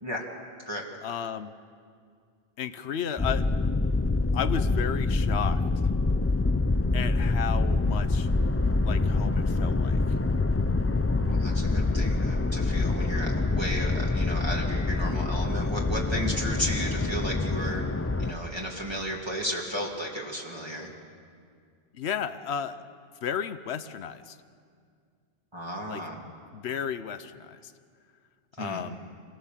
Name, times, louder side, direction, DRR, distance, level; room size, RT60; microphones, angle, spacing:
voice 1, 1.0-1.5 2.6-3.5 4.3-5.6 6.9-8.3 8.8-10.0 21.9-22.8 23.2-24.4 25.9-26.0 26.5-27.7 28.6-29.0, left 8 dB, 90° left, 11 dB, 1.0 m, -33 dB
sound 1, 3.2-18.3, left 3 dB, 20° left, 0.4 m, -26 dB
voice 2, 11.1-17.8 18.2-20.9 25.5-26.2 28.6-28.8, equal, 25° right, -3 dB, 2.2 m, -34 dB
25.5 x 17.0 x 7.4 m, 2.2 s
omnidirectional pair, 1.1 m